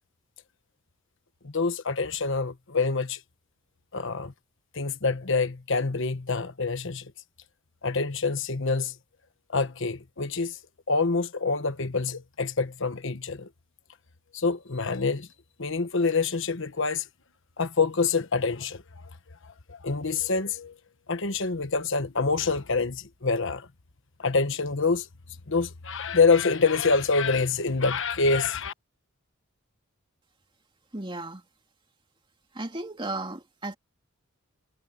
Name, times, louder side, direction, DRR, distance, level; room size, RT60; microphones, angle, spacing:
voice 1, 1.4-3.2 3.9-4.3 4.7-7.1 7.8-8.9 9.5-10.6 10.9-13.5 14.3-15.3 15.6-17.0 17.6-18.8 19.7-20.8 21.1-23.7 24.2-25.1 25.5-28.7, left 4 dB, 60° left, 1.3 m, -26 dB
voice 2, 30.9-31.4 32.5-33.8, right 2 dB, 25° right, 2.8 m, -34 dB
head